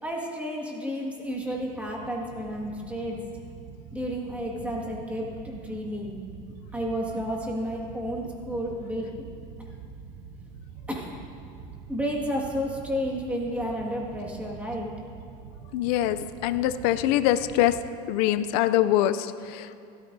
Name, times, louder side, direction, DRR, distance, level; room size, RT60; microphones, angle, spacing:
voice 1, 0.0-3.2 3.9-6.2 6.7-9.1 10.9-11.1 11.9-14.9, equal, 5° right, -2 dB, 1.8 m, -31 dB
sound 1, 1.2-17.8, right 6 dB, 55° right, 0.7 m, -45 dB
voice 2, 15.7-16.2 16.4-17.8 18.1-19.7, left 13 dB, 75° left, 12 dB, 0.5 m, -23 dB
16.0 x 13.0 x 2.7 m, 2.5 s
supercardioid pair, 125°, 20 cm